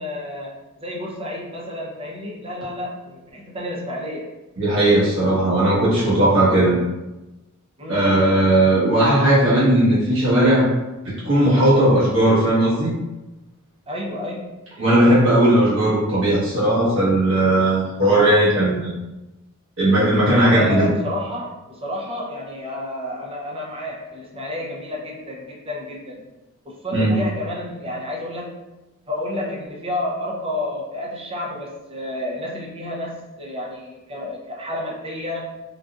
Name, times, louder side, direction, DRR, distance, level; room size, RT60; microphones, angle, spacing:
voice 1, 0.0-4.3 7.8-8.1 13.9-14.7 20.5-26.2 26.6-28.7 29.1-35.6, left 1 dB, 25° right, -3 dB, 0.6 m, -30 dB
voice 2, 4.6-6.8 7.9-10.7 11.0-12.9 14.8-18.9 19.8-20.9 26.9-27.1, right 1 dB, 65° right, -8 dB, 1.3 m, -17 dB
3.9 x 2.4 x 2.4 m, 1.0 s
head